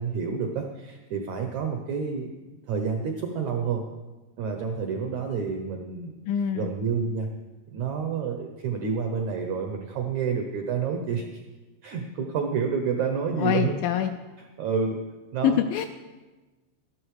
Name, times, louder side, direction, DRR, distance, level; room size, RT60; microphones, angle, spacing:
voice 1, 0.0-2.3 2.7-3.8 4.4-6.1 6.5-7.3 7.7-11.4 11.8-13.7 14.4-15.0 15.3-15.6, right 6 dB, 80° right, 4 dB, 1.6 m, -29 dB
voice 2, 6.3-6.7 13.4-14.1 15.4-15.9, left 9 dB, 80° left, 7 dB, 2.0 m, -25 dB
12.5 x 12.5 x 4.8 m, 1.2 s
omnidirectional pair, 4.5 m